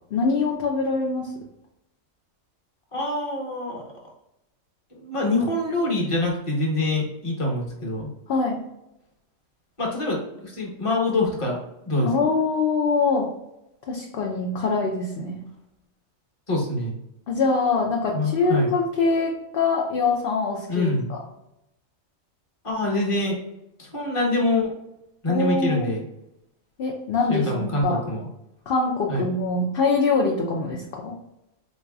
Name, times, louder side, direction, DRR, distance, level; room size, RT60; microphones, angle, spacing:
voice 1, 0.1-1.3 8.3-8.6 12.0-13.3 13.9-15.4 17.3-21.2 25.3-25.9 26.8-28.0 28.7-31.2, left 4 dB, 60° left, -1 dB, 0.6 m, -24 dB
voice 2, 2.9-3.8 5.0-8.1 9.8-12.1 16.5-17.0 18.1-18.7 20.7-21.1 22.6-23.4 23.8-24.7 25.2-26.0 27.3-28.3 29.1-29.3, left 2 dB, 25° left, -1 dB, 0.9 m, -25 dB
3.8 x 3.1 x 2.3 m, 0.87 s
omnidirectional pair, 1.4 m